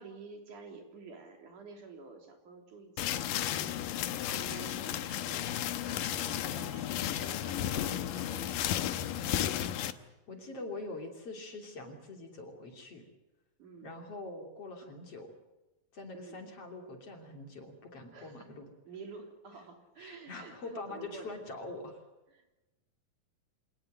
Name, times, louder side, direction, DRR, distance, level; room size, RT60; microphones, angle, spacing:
voice 1, 0.0-3.8 4.3-8.8 10.6-10.8 13.6-13.9 16.1-16.4 18.1-18.5 18.9-21.4 22.3-22.6, right 4 dB, 60° right, 4 dB, 4.7 m, -50 dB
sound 1, 3.0-9.9, left 11 dB, 75° left, 2.6 m, -33 dB
voice 2, 4.2-4.8 7.7-8.1 9.5-9.8 10.3-13.0 13.8-15.3 15.9-18.7 20.0-22.0, left 2 dB, 45° left, 3 dB, 3.8 m, -44 dB
26.0 x 19.5 x 7.8 m, 1.1 s
omnidirectional pair, 4.1 m